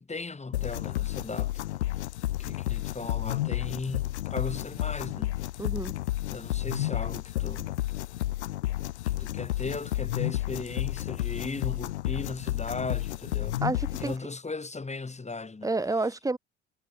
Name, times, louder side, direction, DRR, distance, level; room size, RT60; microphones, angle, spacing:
voice 1, 0.0-1.7 2.4-5.4 6.3-7.7 9.1-13.6 14.0-15.7, left 3 dB, 20° left, 3.3 m, -37 dB
sound 1, 0.5-14.2, left 15 dB, 85° left, 1.5 m, -31 dB
voice 2, 5.6-5.9 13.6-14.1 15.6-16.4, right 3 dB, 10° right, 0.8 m, -29 dB
hypercardioid pair, 60°, 33 cm